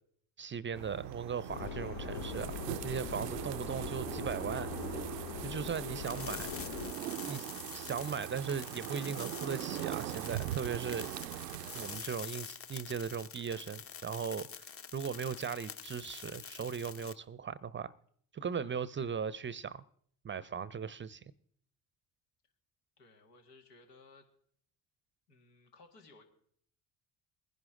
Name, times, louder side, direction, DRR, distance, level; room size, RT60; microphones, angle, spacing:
voice 1, 0.4-2.5 2.8-4.7 5.4-6.5 7.3-11.1 11.7-17.9 18.3-19.8 20.2-21.2, right 6 dB, 25° right, 0.6 m, -38 dB
sound 1, 0.7-12.0, right 14 dB, 90° right, 0.6 m, -41 dB
Subway metro underground, 1.5-6.9, left 10 dB, 65° left, 0.7 m, -42 dB
voice 2, 5.7-6.0 23.0-24.3 25.3-26.2, left 3 dB, 85° left, 1.9 m, -59 dB
sound 2, 6.1-17.1, left 7 dB, 30° left, 0.9 m, -47 dB
19.5 x 10.5 x 3.7 m
hypercardioid pair, 55°, 47 cm